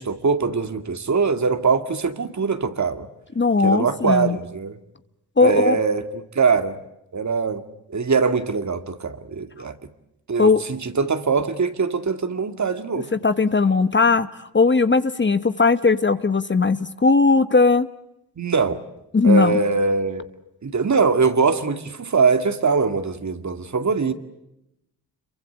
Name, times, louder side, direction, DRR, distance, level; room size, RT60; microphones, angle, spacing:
voice 1, 0.0-3.1 3.6-4.8 5.4-6.8 7.1-7.6 7.9-9.7 10.3-13.1 18.4-18.8 19.2-20.3 20.6-24.1, right 5 dB, 45° right, 10 dB, 2.2 m, -22 dB
voice 2, 3.3-4.4 5.4-5.8 10.4-10.6 13.1-17.9 19.1-19.6, left 4 dB, 25° left, 12 dB, 1.2 m, -18 dB
26.5 x 23.5 x 8.1 m, 0.86 s
cardioid pair, 65°, 41 cm